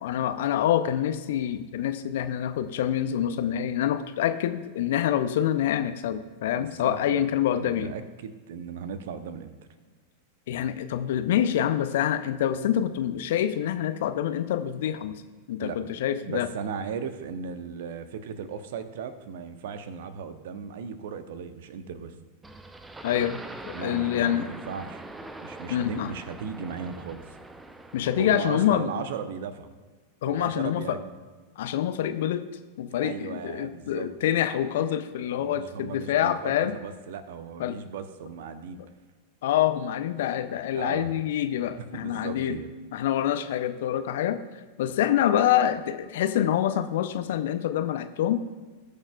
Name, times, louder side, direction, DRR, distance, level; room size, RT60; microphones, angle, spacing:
voice 1, 0.0-7.9 10.5-15.1 15.5-16.5 23.0-23.4 23.7-24.5 25.7-26.1 27.9-28.9 30.2-31.0 31.6-32.5 32.8-36.8 37.6-37.8 39.4-42.6 42.9-44.4 44.8-48.4, left 11 dB, 55° left, 11 dB, 0.6 m, -26 dB
voice 2, 6.5-7.2 7.6-9.6 15.6-15.8 16.2-22.1 23.7-25.0 25.4-27.2 28.2-29.7 30.2-31.1 33.0-34.1 35.3-38.8 40.7-41.1 41.7-42.7, right 6 dB, 55° right, 11 dB, 0.8 m, -37 dB
sound 1, 22.4-28.7, right 2 dB, 10° right, 0.6 m, -43 dB
19.5 x 6.6 x 2.3 m, 1.4 s
figure-of-eight pair, 90°, 0 cm